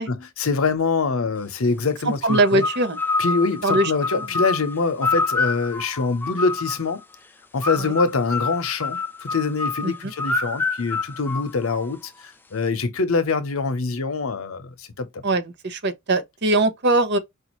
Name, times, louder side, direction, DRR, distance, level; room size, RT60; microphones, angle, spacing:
voice 1, 0.0-2.6 3.2-7.0 7.5-12.1 12.5-15.2, left 4 dB, 80° left, 0.8 m, -24 dB
voice 2, 2.0-3.0 3.6-4.3 7.8-7.9 9.8-10.1 15.2-17.2, right 2 dB, 55° right, 0.8 m, -22 dB
sound 1, 2.2-7.0 7.6-12.1, left 4 dB, 10° left, 0.4 m, -27 dB
4.9 x 2.6 x 3.0 m
head